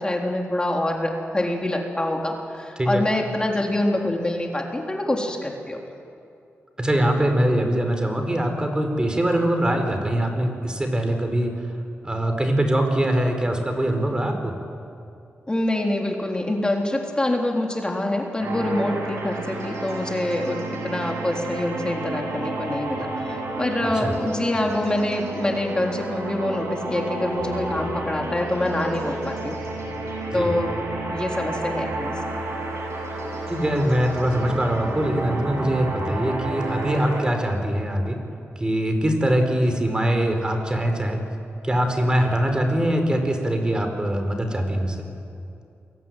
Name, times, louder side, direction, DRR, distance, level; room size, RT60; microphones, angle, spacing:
voice 1, 0.0-5.8 15.5-29.6 30.3-30.7 31.1-32.4, left 1 dB, 20° left, 1 dB, 3.6 m, -25 dB
voice 2, 6.8-11.5 12.0-14.5 23.8-24.1 30.3-30.5 33.5-38.2 38.6-41.2 41.6-45.0, right 1 dB, 20° right, 5 dB, 4.7 m, -23 dB
sound 1, 18.4-37.2, right 2 dB, 90° right, 7.3 m, -31 dB
28.5 x 22.0 x 9.3 m, 2.5 s
wide cardioid pair, 95°, 5 cm